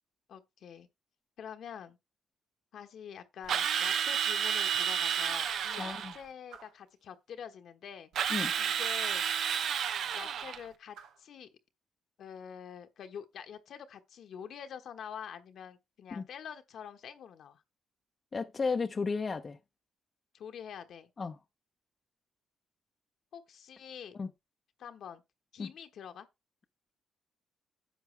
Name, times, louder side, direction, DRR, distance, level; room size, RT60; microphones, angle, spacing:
voice 1, 0.3-0.9 1.4-2.0 2.7-8.1 8.6-9.2 10.1-11.5 12.2-17.6 20.3-21.1 23.3-24.2 24.8-25.2 25.5-26.3, left 8 dB, 65° left, 1.2 m, -46 dB
Drill, 3.5-6.2 8.2-10.6, right 8 dB, 70° right, 0.8 m, -31 dB
sound 1, 5.1-5.4 6.5-6.9 8.2-8.4 9.4-10.7 10.9-11.2, right 7 dB, 90° right, 1.3 m, -53 dB
voice 2, 5.8-6.1 8.3-8.5 16.1-16.2 18.3-19.6 21.2-21.4 24.1-24.3 25.6-25.7, left 4 dB, 35° left, 0.8 m, -33 dB
10.5 x 7.2 x 3.3 m
cardioid pair, 90°, 0 cm